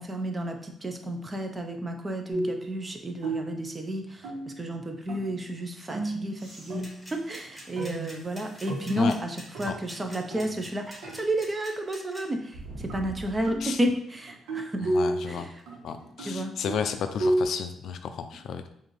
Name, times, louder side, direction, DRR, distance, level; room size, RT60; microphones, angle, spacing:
voice 1, 0.0-6.8 7.1-14.9 15.3-15.6 16.2-16.6, right 1 dB, 25° right, 5 dB, 0.6 m, -32 dB
sound 1, 2.3-2.7 3.2-3.7 4.2-4.7 5.1-5.5 5.9-7.2 7.8-10.7 11.0-11.3 12.9-15.3 15.7-17.4, right 1 dB, 85° right, 1.2 m, -32 dB
sound 2, 6.3-9.1 9.7-9.8 12.5-13.7 15.6-15.7, right 2 dB, 55° right, 1.5 m, -46 dB
sound 3, 6.8-12.2, equal, ahead, 1.7 m, -45 dB
voice 2, 14.9-15.5 15.8-18.7, left 7 dB, 70° left, 8 dB, 0.3 m, -32 dB
4.9 x 2.6 x 3.1 m, 0.70 s
cardioid pair, 90°, 0 cm